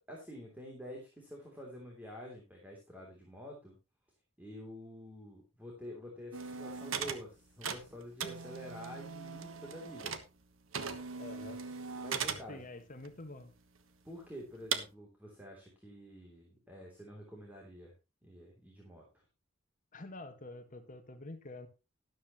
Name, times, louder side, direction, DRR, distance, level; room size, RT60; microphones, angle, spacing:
voice 1, 0.1-3.8 4.4-10.2 12.0-12.6 14.0-17.9 18.2-19.1, equal, 10° right, -1 dB, 3.1 m, -48 dB
sound 1, 6.3-10.4 10.7-12.5 13.0-13.1 13.8-13.9 14.7-14.8, right 6 dB, 75° right, 1.3 m, -39 dB
voice 2, 11.2-11.6 12.5-13.5 19.9-21.7, left 2 dB, 40° left, 8 dB, 1.6 m, -47 dB
13.0 x 12.0 x 3.0 m, 0.27 s
head